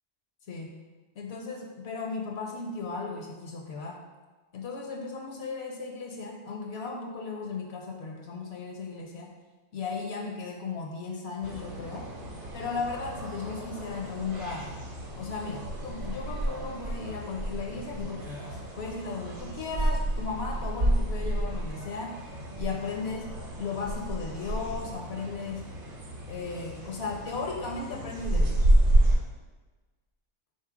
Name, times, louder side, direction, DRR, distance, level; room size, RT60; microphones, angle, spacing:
voice 1, 0.5-0.8 1.2-4.0 4.5-9.3 9.7-12.1 12.5-14.7 15.2-22.3 22.6-23.2 23.6-25.7 26.3-28.7, left 4 dB, 70° left, 1 dB, 0.8 m, -36 dB
sound 1, 11.4-29.2, right 1 dB, 50° right, 0.9 m, -30 dB
3.7 x 2.8 x 4.7 m, 1.3 s
omnidirectional pair, 1.2 m